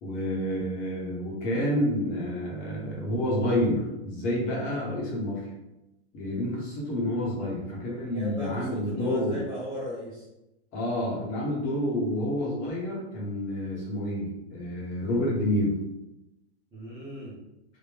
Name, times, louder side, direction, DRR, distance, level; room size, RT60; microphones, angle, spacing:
voice 1, 0.0-5.5 6.1-9.4 10.7-15.8, left 1 dB, 20° left, -4 dB, 0.8 m, -29 dB
voice 2, 8.1-10.3 16.7-17.4, equal, 10° right, -12 dB, 0.4 m, -37 dB
3.3 x 2.1 x 3.4 m, 0.94 s
hypercardioid pair, 150°, 35 cm